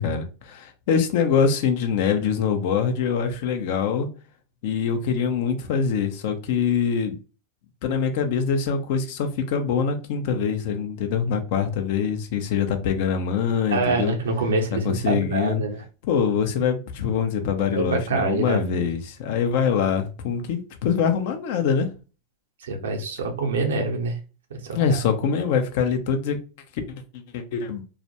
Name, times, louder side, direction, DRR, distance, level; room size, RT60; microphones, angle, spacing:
voice 1, 0.0-4.1 4.6-7.2 7.8-14.2 14.8-15.6 16.0-21.9 24.7-26.4 27.3-27.8, left 6 dB, 65° left, 0.5 m, -24 dB
voice 2, 13.7-15.8 17.6-18.9 22.6-24.2 24.5-25.0, right 3 dB, 80° right, 0.7 m, -26 dB
2.3 x 2.2 x 2.8 m
hypercardioid pair, 95°, 0 cm